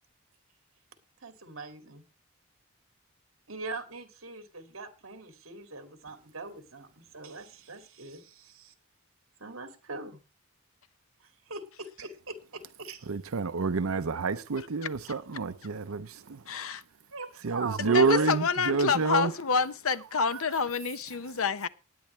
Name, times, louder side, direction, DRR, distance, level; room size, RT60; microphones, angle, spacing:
voice 1, 1.2-2.0 3.5-8.7 9.4-10.2 11.5-13.1 17.1-18.6, right 2 dB, 70° right, 2.3 m, -40 dB
voice 2, 13.1-16.4 17.4-19.3 20.2-20.4, right 4 dB, 85° right, 0.6 m, -28 dB
voice 3, 16.5-16.8 17.8-21.7, left 5 dB, 80° left, 0.8 m, -28 dB
19.0 x 9.4 x 3.2 m
head